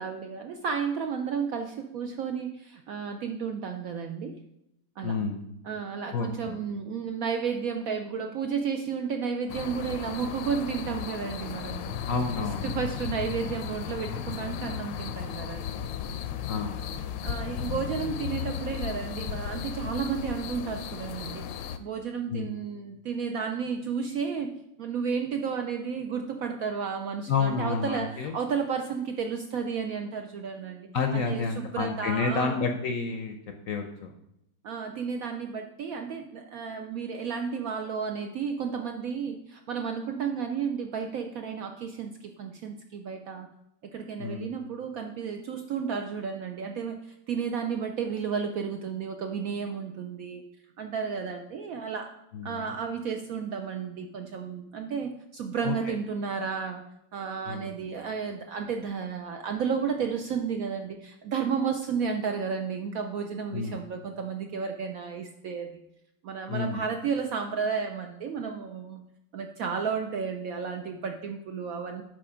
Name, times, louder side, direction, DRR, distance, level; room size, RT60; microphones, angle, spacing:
voice 1, 0.0-4.4 5.0-5.2 5.6-12.0 12.4-15.7 17.2-24.5 24.8-32.6 34.6-43.5 43.9-50.4 50.8-52.1 52.4-56.8 57.1-65.8 66.2-69.1 69.3-72.0, right 6 dB, 70° right, 5 dB, 0.8 m, -32 dB
voice 2, 5.0-5.4 6.1-6.6 12.1-12.8 16.5-16.8 22.3-22.5 27.3-28.3 30.9-33.4 33.7-34.1 44.2-44.5 52.3-52.7 55.6-55.7 57.5-57.7 63.5-63.8 66.5-66.8, left 4 dB, 65° left, 5 dB, 0.8 m, -29 dB
sound 1, 9.5-21.8, left 8 dB, 80° left, 1.2 m, -35 dB
7.6 x 5.1 x 4.9 m, 0.82 s
omnidirectional pair, 2.0 m